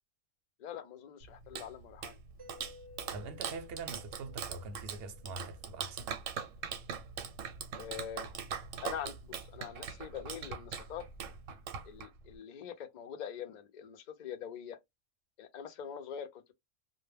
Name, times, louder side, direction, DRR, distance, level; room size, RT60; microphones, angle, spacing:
voice 1, 0.6-2.2 7.8-8.3 8.8-11.0 11.9-14.8 15.4-16.5, left 8 dB, 70° left, 0.4 m, -44 dB
Clapping, 1.2-12.4, right 7 dB, 85° right, 0.9 m, -42 dB
Mallet percussion, 2.4-6.2, left 3 dB, 30° right, 0.4 m, -57 dB
voice 2, 3.1-6.1, right 4 dB, 60° right, 0.7 m, -44 dB
2.1 x 2.1 x 3.2 m
omnidirectional pair, 1.3 m